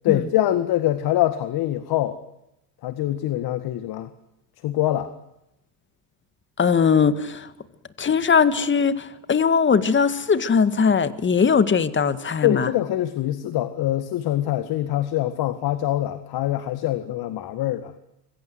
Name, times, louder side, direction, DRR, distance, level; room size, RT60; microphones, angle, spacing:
voice 1, 0.0-2.2 2.8-4.1 4.6-5.1 12.4-17.9, left 13 dB, 50° left, 12 dB, 1.8 m, -24 dB
voice 2, 6.6-7.5 8.0-12.7, left 6 dB, 25° left, 13 dB, 1.9 m, -20 dB
26.0 x 22.0 x 8.0 m, 0.84 s
hypercardioid pair, 90°, 48 cm